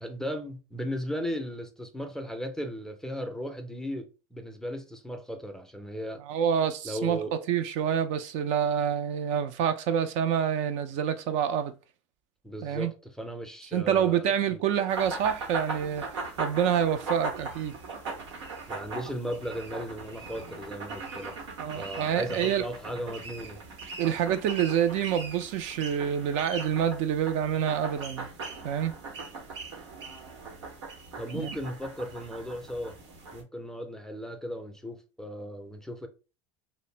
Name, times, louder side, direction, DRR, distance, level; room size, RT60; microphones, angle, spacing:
voice 1, 0.0-4.1 4.3-6.2 6.8-7.3 12.4-14.6 18.7-21.4 21.7-23.6 31.2-33.0 33.3-36.1, equal, 5° left, 0.4 m, -36 dB
voice 2, 6.3-11.7 12.6-12.9 13.7-16.1 16.4-17.8 21.6-22.6 24.0-28.3 28.6-28.9 31.3-31.6, right 8 dB, 55° right, 0.4 m, -27 dB
sound 1, 14.9-33.4, right 3 dB, 85° right, 0.9 m, -39 dB
2.5 x 2.0 x 3.0 m
supercardioid pair, 100°, 15 cm